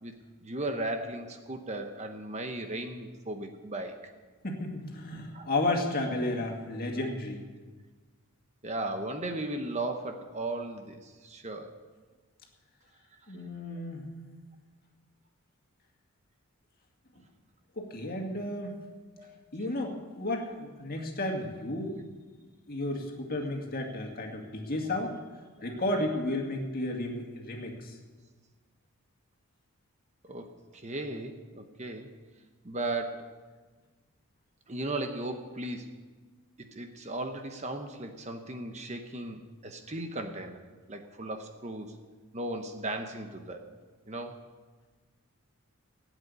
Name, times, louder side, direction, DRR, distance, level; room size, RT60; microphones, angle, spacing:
voice 1, 0.0-4.1 5.3-5.5 7.0-7.1 8.6-11.7 13.1-13.2 19.2-19.4 30.2-32.1 32.6-33.3 34.7-35.9 36.6-40.6 40.9-41.9 42.3-43.7 44.1-44.3, right 2 dB, 30° right, 6 dB, 1.0 m, -36 dB
voice 2, 4.4-7.4 13.3-14.0 17.8-18.8 19.5-22.0 22.7-25.2 25.6-28.0, left 1 dB, 40° left, 2 dB, 2.2 m, -33 dB
16.0 x 8.2 x 9.6 m, 1.4 s
head